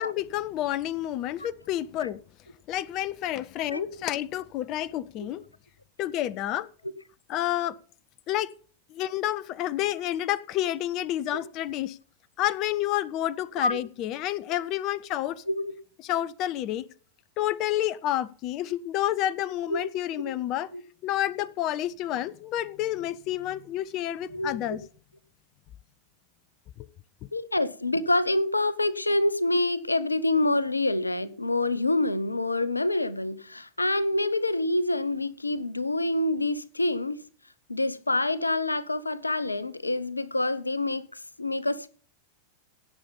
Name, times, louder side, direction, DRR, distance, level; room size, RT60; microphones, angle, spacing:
voice 1, 0.0-2.2 2.7-5.4 6.0-6.7 7.3-7.8 8.3-8.5 8.9-12.0 12.4-15.4 16.0-16.9 17.4-20.7 21.0-24.8 26.8-26.9, left 13 dB, 40° left, 0.5 m, -29 dB
voice 2, 27.3-37.2 37.7-41.9, left 2 dB, 85° left, 0.7 m, -27 dB
17.0 x 6.9 x 5.4 m
figure-of-eight pair, 90°, 0 cm